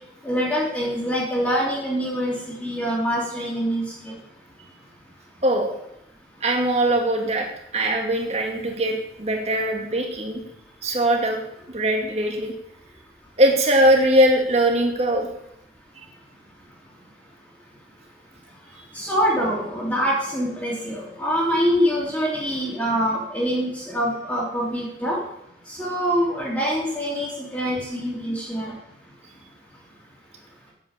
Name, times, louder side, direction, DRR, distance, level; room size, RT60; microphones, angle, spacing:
voice 1, 0.2-4.1 18.9-25.2 25.7-28.7, equal, 10° left, -8 dB, 2.6 m, -25 dB
voice 2, 5.4-5.7 6.4-7.5 7.7-10.4 10.8-11.4 11.7-12.5 13.4-15.3, right 1 dB, 35° right, 2 dB, 2.0 m, -21 dB
9.0 x 7.5 x 7.1 m, 0.80 s
head